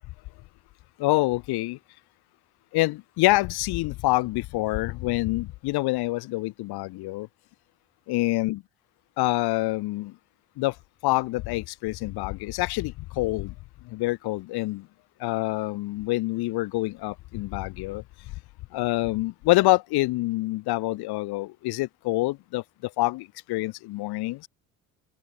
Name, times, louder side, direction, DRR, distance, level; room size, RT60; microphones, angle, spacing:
voice 1, 1.0-1.8 2.7-7.3 8.1-8.6 9.2-10.1 10.6-10.7 11.0-13.5 13.9-14.8 15.2-18.0 18.7-22.6 23.0-24.5, left 20 dB, 65° left, 7.2 m, -26 dB
hypercardioid pair, 60°, 41 cm